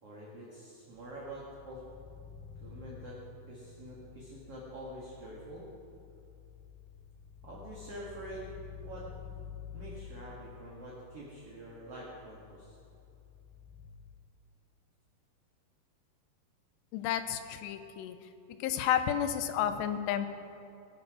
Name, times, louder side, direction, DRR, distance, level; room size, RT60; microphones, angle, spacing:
voice 1, 0.0-1.8 2.6-3.2 3.5-5.7 7.4-9.1 9.7-12.8, right 1 dB, 45° right, -6 dB, 2.4 m, -46 dB
sound 1, 0.9-13.9, left 8 dB, 20° right, 2.1 m, -51 dB
voice 2, 16.9-18.2 18.6-20.3, left 10 dB, 85° left, 10 dB, 2.9 m, -31 dB
21.0 x 8.3 x 6.1 m, 2.7 s
omnidirectional pair, 4.9 m